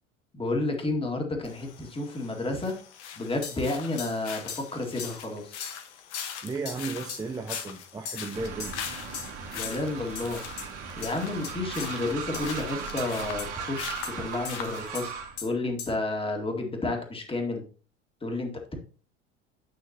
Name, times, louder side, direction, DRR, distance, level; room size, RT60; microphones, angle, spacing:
voice 1, 0.3-2.8 3.2-5.7 9.5-10.4 11.0-17.6 18.2-18.7, left 2 dB, 15° left, 2.0 m, -31 dB
sound 1, 1.4-15.1, left 8 dB, 65° left, 1.3 m, -42 dB
sound 2, 3.4-3.6 4.0-4.2 4.5-4.7 5.0-5.2 5.6-5.8 6.1-6.3 6.7-6.8 7.1-7.2 7.5-7.7 8.1-8.3 8.6-8.8 9.1-9.3 9.6-9.8 10.1-10.3 10.6-10.7 11.0-11.1 11.4-11.5 11.8-11.9 12.3-12.4 13.0-13.1 13.4-13.5 14.0-14.1 14.4-14.5 14.9-15.1 15.4-15.5 15.8-15.9, left 7 dB, 50° left, 2.3 m, -38 dB
voice 2, 6.4-8.8, right 4 dB, 10° right, 0.6 m, -34 dB
Train, 8.3-15.4, right 6 dB, 65° right, 2.0 m, -38 dB
9.9 x 5.7 x 2.8 m
figure-of-eight pair, 75°, 36 cm